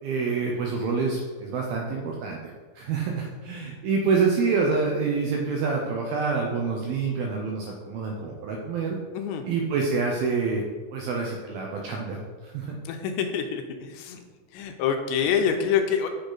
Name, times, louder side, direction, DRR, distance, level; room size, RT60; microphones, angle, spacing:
voice 1, 0.0-2.4 2.8-9.0 9.4-10.6 10.9-12.7, right 4 dB, 85° right, 0 dB, 2.1 m, -27 dB
voice 2, 9.1-9.5 12.9-14.2 14.5-16.1, left 7 dB, 80° left, 5 dB, 2.9 m, -26 dB
8.0 x 6.5 x 3.9 m, 1.4 s
omnidirectional pair, 5.3 m